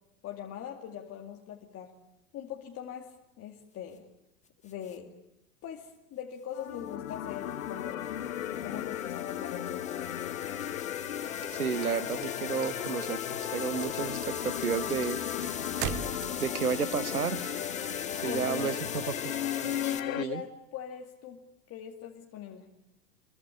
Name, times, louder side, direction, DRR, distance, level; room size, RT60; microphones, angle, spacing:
voice 1, 0.2-2.0 2.3-4.1 4.6-5.2 5.6-8.0 8.6-10.0 18.2-18.7 19.8-21.4 21.7-22.7, left 9 dB, 35° left, 1 dB, 2.4 m, -41 dB
sound 1, 4.7-5.0 7.1-20.0, left 6 dB, 15° left, 2.0 m, -42 dB
sound 2, 6.5-20.2, left 11 dB, 65° left, 1.2 m, -35 dB
sound 3, 11.4-12.7 13.0-13.5 13.8-16.6, right 10 dB, 40° right, 1.9 m, -38 dB
voice 2, 11.5-13.2 13.5-15.2 16.4-17.6 18.2-19.3 20.2-20.4, right 6 dB, 85° right, 17 dB, 1.0 m, -32 dB
26.0 x 23.0 x 8.7 m, 0.88 s
figure-of-eight pair, 90°, 43 cm